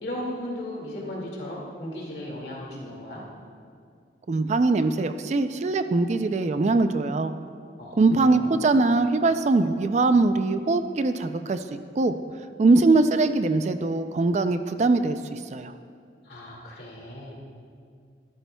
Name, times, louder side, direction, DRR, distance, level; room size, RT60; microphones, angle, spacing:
voice 1, 0.0-3.2 7.8-8.8 16.2-17.5, left 1 dB, 65° left, -3 dB, 2.1 m, -36 dB
voice 2, 4.3-7.3 8.0-12.1 12.6-15.7, right 3 dB, 40° right, 10 dB, 0.3 m, -22 dB
13.5 x 12.5 x 2.3 m, 2.2 s
head